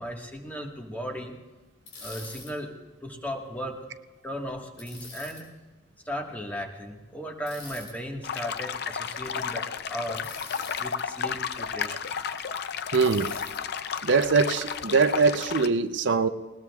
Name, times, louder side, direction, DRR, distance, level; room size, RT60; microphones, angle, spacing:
voice 1, 0.0-1.4 2.0-2.8 3.0-3.8 4.2-5.4 6.0-10.3 10.8-12.1, equal, 10° left, 1 dB, 1.5 m, -36 dB
Bicycle, 1.9-2.5 4.8-5.4 7.5-7.9 10.2-10.8 12.9-13.6, left 3 dB, 80° left, 5.8 m, -44 dB
sound 1, 8.2-15.7, left 7 dB, 55° left, 0.5 m, -33 dB
voice 2, 12.9-13.3 14.0-16.3, right 4 dB, 65° right, 9 dB, 0.6 m, -22 dB
20.0 x 19.0 x 2.4 m, 1.2 s
head